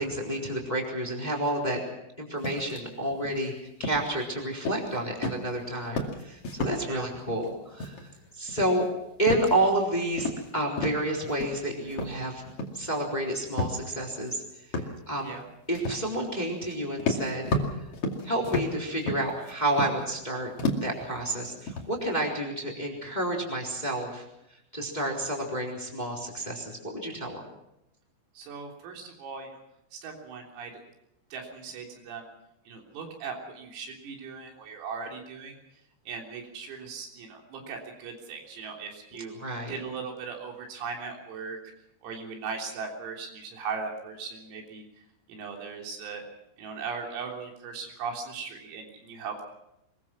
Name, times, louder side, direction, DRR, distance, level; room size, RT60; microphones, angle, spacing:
voice 1, 0.0-1.8 2.2-3.5 3.8-8.9 9.2-12.4 12.7-14.4 14.7-15.3 15.7-17.5 18.2-20.5 20.8-24.2 24.7-27.4 39.4-39.8, right 1 dB, 10° left, 0 dB, 3.4 m, -30 dB
sound 1, 2.4-2.8 3.1-3.4 3.8-4.2 4.6-5.0 5.2-5.6 5.8-6.8 7.1-7.5 7.8-8.2 8.5-9.8 10.2-10.5 10.8-11.6 11.9-12.9 13.6-13.8 14.3-14.4 14.7-15.0 15.7-16.0 16.6-16.7 17.0-20.2 20.6-21.0 21.4-22.3, left 2 dB, 40° left, 2.3 m, -32 dB
voice 2, 28.4-29.5 29.9-30.7 31.3-32.3 32.7-35.6 36.1-39.3 39.7-41.6 42.0-44.8 45.3-46.2 46.6-49.4, right 5 dB, 85° right, 1 dB, 6.2 m, -38 dB
24.0 x 22.0 x 6.1 m, 0.85 s
omnidirectional pair, 5.9 m